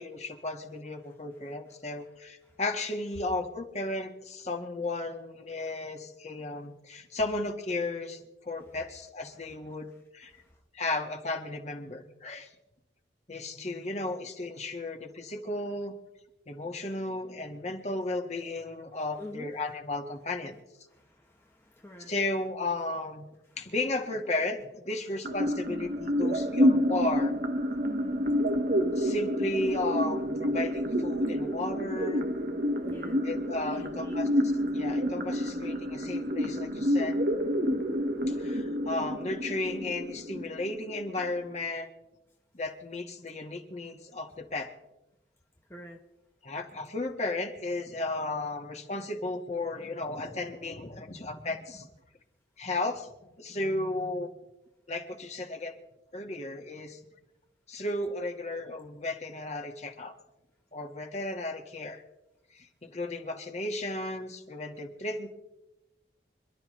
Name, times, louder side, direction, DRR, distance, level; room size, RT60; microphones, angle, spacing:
voice 1, 0.0-9.9 10.1-10.3 10.7-12.5 13.3-16.0 16.5-20.6 22.0-23.3 23.6-27.3 29.0-32.3 33.2-34.3 34.7-37.2 38.3-41.9 42.5-44.7 46.4-51.9 52.6-53.1 53.4-54.3 54.9-55.7 56.1-57.0 57.7-60.1 60.7-62.0 62.5-65.3, left 2 dB, 40° left, 4 dB, 1.7 m, -34 dB
voice 2, 19.2-19.5 20.9-22.1 27.7-28.4 32.8-33.2 33.7-34.2 45.7-46.0, equal, 15° left, 1 dB, 1.1 m, -47 dB
sound 1, 25.2-41.2, equal, 60° right, 1.4 m, -29 dB
26.5 x 12.0 x 3.3 m, 0.95 s
head